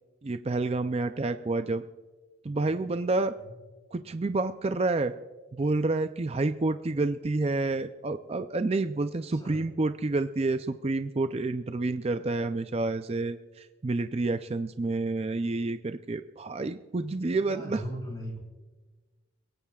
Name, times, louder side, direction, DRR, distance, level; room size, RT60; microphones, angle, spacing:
voice 1, 0.2-1.8 2.4-3.4 3.9-5.1 5.5-17.8, right 2 dB, 30° right, 9 dB, 0.4 m, -29 dB
voice 2, 17.4-18.4, equal, 20° left, -1 dB, 4.0 m, -38 dB
28.0 x 17.0 x 2.4 m, 1.3 s
head